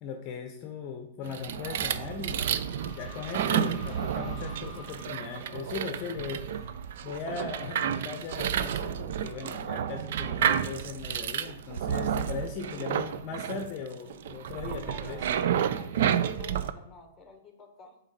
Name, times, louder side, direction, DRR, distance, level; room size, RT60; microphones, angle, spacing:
voice 1, 0.0-15.5, left 5 dB, 35° left, 5 dB, 0.7 m, -39 dB
sound 1, 1.3-16.7, right 9 dB, 60° right, 0.4 m, -31 dB
sound 2, 1.8-7.4, equal, 5° right, 2.2 m, -46 dB
voice 2, 12.2-12.9 14.7-18.0, left 3 dB, 15° left, 5 dB, 1.1 m, -51 dB
7.1 x 4.0 x 4.2 m, 0.79 s
hypercardioid pair, 135°, 0 cm